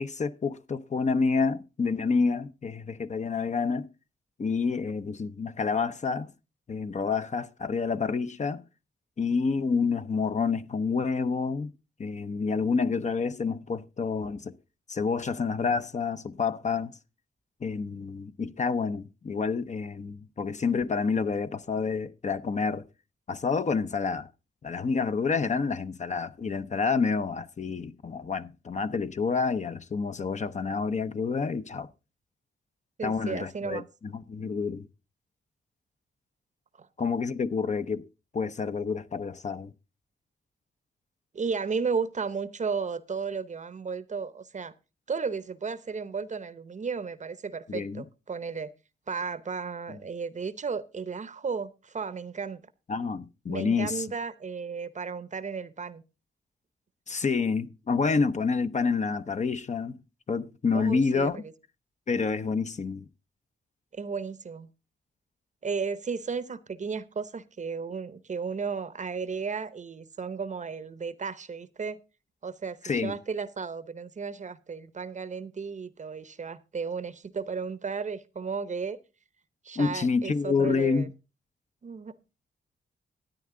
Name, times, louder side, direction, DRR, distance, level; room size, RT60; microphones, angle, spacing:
voice 1, 0.0-3.9 4.4-6.3 6.7-8.7 9.2-11.7 12.0-14.5 14.9-17.0 17.6-22.9 23.3-24.3 24.6-31.9 33.0-34.9 37.0-38.0 38.3-39.7 47.7-48.0 49.9-50.0 52.9-54.1 57.1-60.0 60.3-61.4 62.1-63.0 72.8-73.1 79.8-81.1, left 5 dB, 40° left, 0.7 m, -28 dB
voice 2, 33.0-33.9 36.8-36.9 41.3-44.7 45.1-48.7 49.1-52.6 53.5-56.0 60.7-61.5 63.9-64.7 65.6-72.0 72.4-79.0 79.6-81.1 81.8-82.2, right 5 dB, 40° right, 0.8 m, -34 dB
13.0 x 9.4 x 3.7 m
cardioid pair, 95°, 19 cm